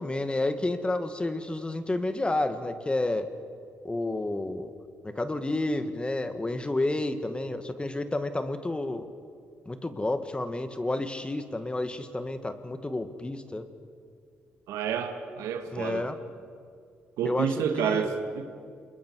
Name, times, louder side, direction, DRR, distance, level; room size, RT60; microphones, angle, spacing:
voice 1, 0.0-3.3 3.8-4.7 5.0-9.1 9.6-13.7 15.7-16.2 17.2-18.1, left 2 dB, 20° left, 9 dB, 1.7 m, -30 dB
voice 2, 14.7-16.1 17.2-18.5, right 7 dB, 80° right, 7 dB, 1.7 m, -29 dB
29.0 x 21.5 x 4.7 m, 2.2 s
supercardioid pair, 55°, 5 cm